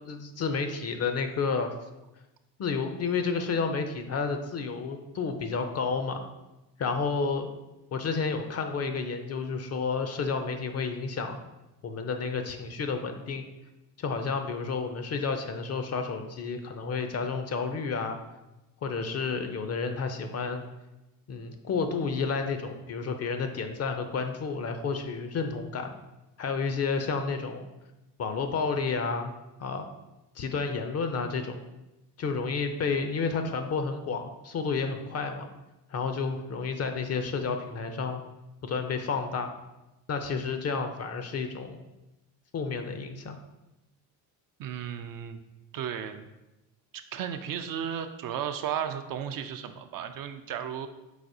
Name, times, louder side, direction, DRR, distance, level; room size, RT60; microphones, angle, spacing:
voice 1, 0.1-1.7 2.6-6.2 6.8-7.5 7.9-11.4 11.8-13.4 14.0-18.2 18.8-20.6 21.3-25.9 26.4-27.7 28.2-29.3 29.6-29.9 30.4-31.5 32.2-35.5 35.9-38.2 38.6-39.5 40.1-41.8 42.5-43.4, left 5 dB, 35° left, 7 dB, 0.5 m, -31 dB
voice 2, 44.6-45.4 45.7-46.3 47.1-50.9, right 9 dB, 50° right, 8 dB, 0.4 m, -34 dB
4.9 x 4.0 x 2.6 m, 0.99 s
supercardioid pair, 80°, 45 cm